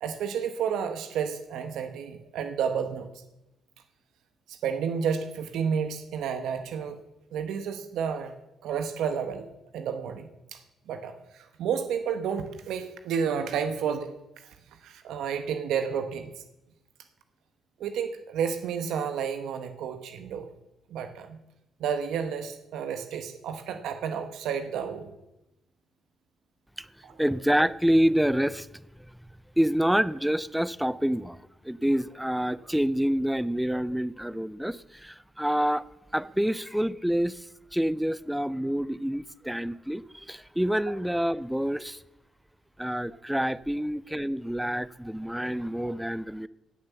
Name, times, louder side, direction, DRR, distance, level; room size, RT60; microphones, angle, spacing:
voice 1, 0.0-3.1 4.5-7.0 7.3-8.3 8.6-9.5 9.7-10.6 10.9-14.1 14.8-16.4 17.8-20.5 20.9-21.4 21.8-25.1 27.0-27.1, right 7 dB, 80° right, 1.2 m, -31 dB
voice 2, 27.2-28.9 29.6-31.4 31.6-35.9 36.1-42.0 42.8-46.5, equal, 5° right, 0.5 m, -27 dB
16.5 x 7.3 x 7.0 m
cardioid pair, 90°, 0 cm